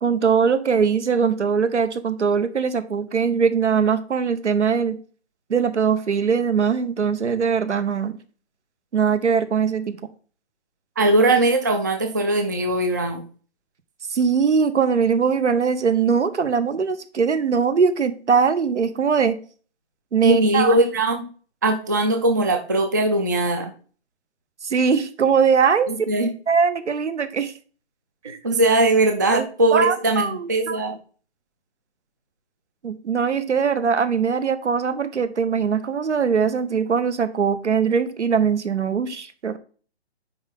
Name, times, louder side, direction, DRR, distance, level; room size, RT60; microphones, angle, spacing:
voice 1, 0.0-5.0 5.5-8.2 8.9-10.0 14.1-19.4 20.1-20.8 24.6-25.9 26.5-27.5 28.2-28.4 29.3-29.5 29.7-30.8 32.8-39.6, right 6 dB, 85° right, 12 dB, 1.1 m, -21 dB
voice 2, 11.0-13.2 20.2-21.2 21.6-23.7 25.9-26.3 28.4-31.0, right 2 dB, 20° right, 5 dB, 0.4 m, -20 dB
9.6 x 4.0 x 3.7 m, 0.40 s
hypercardioid pair, 150°, 34 cm